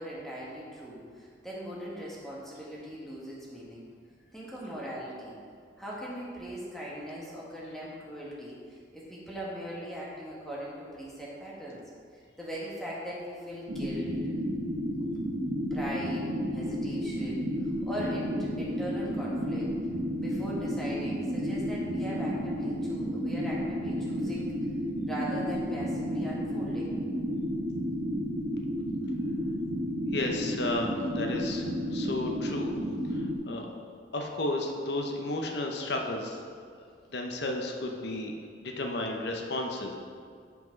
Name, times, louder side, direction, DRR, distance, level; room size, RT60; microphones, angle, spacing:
voice 1, 0.0-3.8 4.3-5.4 5.8-11.8 12.1-14.2 15.0-15.2 15.7-19.7 20.2-24.5 25.1-26.9, equal, ahead, -6 dB, 1.5 m, -40 dB
sound 1, 13.7-33.4, equal, 65° right, 1.2 m, -32 dB
voice 2, 30.1-32.7 33.1-33.7 34.1-36.4 37.1-38.3 38.6-39.9, left 2 dB, 65° left, 2 dB, 0.8 m, -33 dB
5.9 x 5.9 x 5.2 m, 2.1 s
head